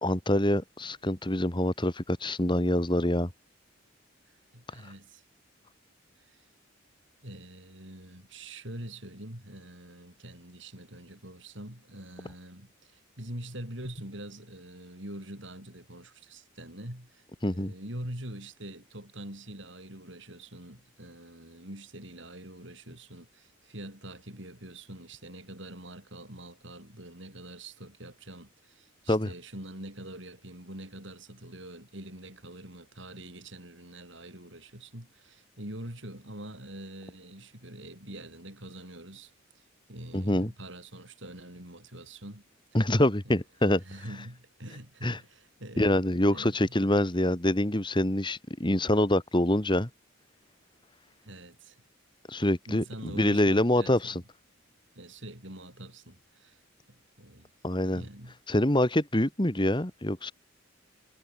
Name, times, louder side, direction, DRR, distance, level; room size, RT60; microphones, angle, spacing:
voice 1, 0.0-3.3 17.4-17.7 29.1-29.3 40.1-40.5 42.7-43.8 45.0-45.2 45.8-49.9 52.3-52.8 53.2-54.2 57.6-58.0 58.5-60.3, left 1 dB, 20° left, 1.8 m, -25 dB
voice 2, 4.5-5.2 6.2-6.4 7.2-39.6 39.9-42.4 43.8-46.0 46.3-46.8 51.2-51.8 52.7-54.2 55.0-56.6 56.9-57.5 57.9-58.4, right 1 dB, 60° right, 7.7 m, -44 dB
head